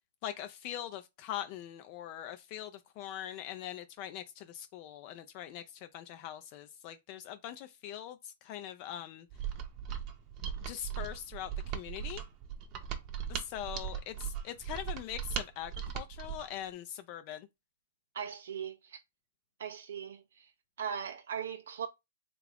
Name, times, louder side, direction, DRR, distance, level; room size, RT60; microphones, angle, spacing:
voice 1, 0.2-9.3 10.7-12.2 13.3-17.5, left 11 dB, 35° left, 0.4 m, -42 dB
Mechanisms, 9.3-16.5, right 8 dB, 30° right, 0.7 m, -38 dB
voice 2, 18.1-19.0 19.6-20.5 20.8-21.9, right 7 dB, 70° right, 0.5 m, -39 dB
3.6 x 2.4 x 3.4 m
hypercardioid pair, 155°, 0 cm